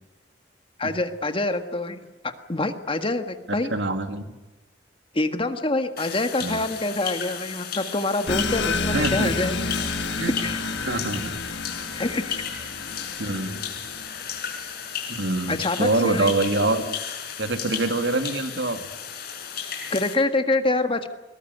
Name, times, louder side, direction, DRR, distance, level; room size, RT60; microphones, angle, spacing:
voice 1, 0.8-2.0 2.2-3.7 5.1-9.5 10.4-10.6 11.9-12.4 15.5-16.3 19.9-21.1, left 2 dB, 30° left, 8 dB, 1.6 m, -26 dB
voice 2, 3.7-4.2 6.4-6.7 8.9-9.3 10.2-10.3 10.8-11.3 13.2-13.6 15.1-17.0 17.4-18.8, right 2 dB, 80° right, 7 dB, 2.3 m, -25 dB
sound 1, 6.0-20.2, left 8 dB, 60° left, 5.5 m, -34 dB
sound 2, 8.3-14.5, left 3 dB, 80° left, 1.6 m, -30 dB
sound 3, 8.3-13.9, left 1 dB, 20° right, 4.5 m, -40 dB
21.5 x 20.5 x 9.6 m, 1.1 s
head